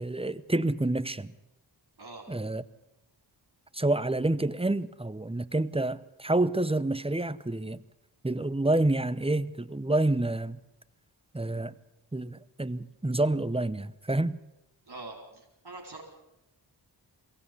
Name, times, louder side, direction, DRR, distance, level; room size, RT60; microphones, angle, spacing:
voice 1, 0.0-1.3 2.3-2.6 3.7-7.8 8.2-10.6 11.3-11.7 12.1-14.4, right 2 dB, 15° right, 0.8 m, -28 dB
voice 2, 14.8-16.0, right 2 dB, 60° right, 4.5 m, -44 dB
22.5 x 17.0 x 8.5 m
wide cardioid pair, 55°, 44 cm